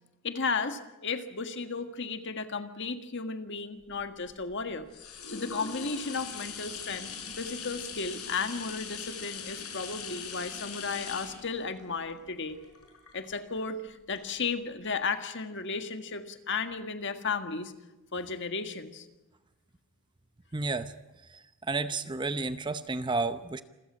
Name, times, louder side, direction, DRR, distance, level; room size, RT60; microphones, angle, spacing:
voice 1, 0.2-4.9 5.3-7.1 7.4-12.6 13.1-17.7 18.1-19.1, left 4 dB, 55° left, 8 dB, 1.7 m, -34 dB
sound 1, 3.9-13.6 14.2-14.3, left 6 dB, 85° left, 6.2 m, -41 dB
voice 2, 20.5-20.9 21.3-21.4 21.7-23.6, right 3 dB, 20° right, 11 dB, 0.7 m, -31 dB
27.5 x 15.0 x 8.8 m, 1.0 s
head